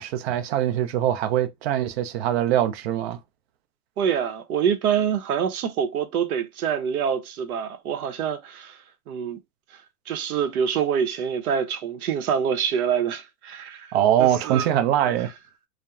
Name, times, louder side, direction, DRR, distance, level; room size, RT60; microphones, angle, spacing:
voice 1, 0.0-3.2 13.9-15.3, right 11 dB, 45° right, 0.5 m, -22 dB
voice 2, 4.0-8.8 9.1-9.4 10.1-13.9 14.2-14.7, right 8 dB, 65° right, 0.8 m, -26 dB
2.8 x 2.1 x 2.3 m
hypercardioid pair, 125°, 47 cm